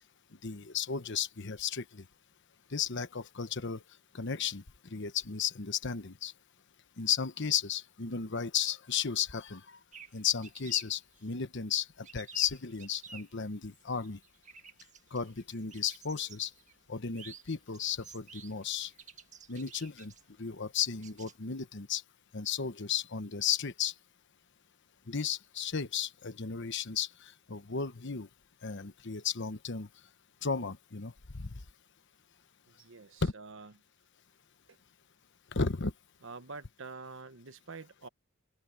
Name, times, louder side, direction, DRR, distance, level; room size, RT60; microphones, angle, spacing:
voice 1, 0.4-2.0 2.7-3.8 4.1-4.6 4.9-6.3 7.0-9.8 10.1-14.2 15.1-16.5 16.9-18.9 19.5-20.1 20.4-22.0 22.3-23.9 25.1-28.3 28.6-29.9 30.4-31.5 33.2-33.3 35.5-35.9, left 7 dB, 60° left, 1.1 m, -34 dB
sound 1, 9.9-21.4, right 6 dB, 35° right, 1.6 m, -53 dB
voice 2, 32.7-33.7 34.7-34.8 36.2-38.1, right 4 dB, 65° right, 1.3 m, -47 dB
open air
head